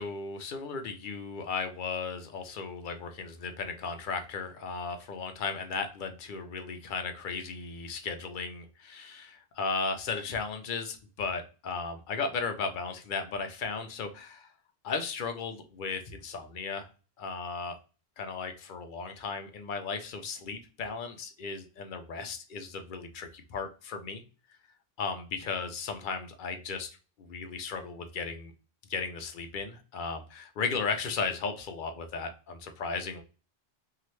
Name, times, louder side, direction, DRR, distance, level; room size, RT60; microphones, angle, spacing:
voice 1, 0.0-14.5 14.8-16.9 17.2-17.7 18.2-24.2 25.0-28.5 28.9-33.2, left 5 dB, 60° left, 7 dB, 0.6 m, -35 dB
2.8 x 2.4 x 3.1 m, 0.35 s
omnidirectional pair, 1.0 m